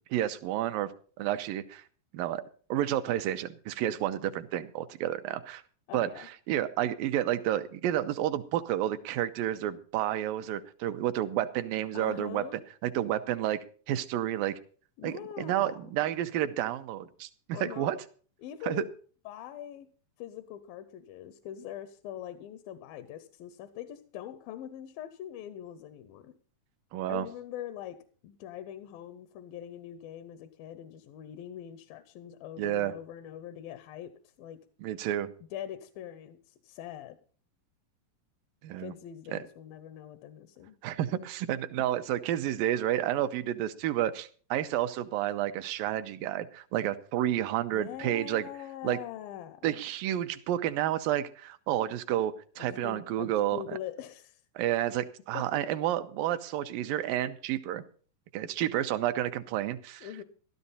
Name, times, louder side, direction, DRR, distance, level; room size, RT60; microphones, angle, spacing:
voice 1, 0.1-0.9 1.2-1.8 2.1-2.4 2.7-5.6 5.9-6.1 6.5-12.4 12.8-13.6 13.9-14.6 15.0-18.0 18.6-18.9 26.9-27.3 32.6-32.9 34.8-35.3 38.6-38.9 39.3-39.4 40.8-48.4 48.8-49.0 49.6-53.8 54.6-57.8 58.3-60.1, right 12 dB, 85° right, 11 dB, 2.5 m, -30 dB
voice 2, 5.9-6.3 11.9-12.6 15.0-15.9 17.5-17.9 18.4-18.9 19.3-19.9 20.2-26.3 27.1-34.7 35.5-37.2 38.8-40.8 47.7-49.8 52.6-54.4 55.3-55.6 60.0-60.2, left 11 dB, 90° left, 11 dB, 2.6 m, -43 dB
13.5 x 13.0 x 4.1 m, 0.42 s
omnidirectional pair, 4.0 m